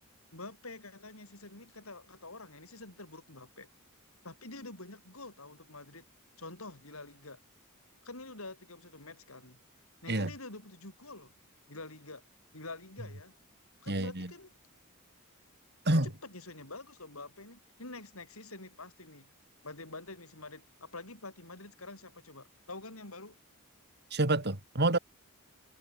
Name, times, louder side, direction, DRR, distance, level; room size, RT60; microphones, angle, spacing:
voice 1, 0.3-3.7 4.2-6.1 6.4-7.4 8.0-9.6 10.0-11.3 11.7-12.2 12.5-13.3 13.8-14.5 15.9-19.3 19.6-23.4, left 2 dB, 70° left, 7.6 m, -47 dB
voice 2, 13.9-14.3 15.9-16.1 24.1-25.0, right 2 dB, 50° right, 3.5 m, -28 dB
head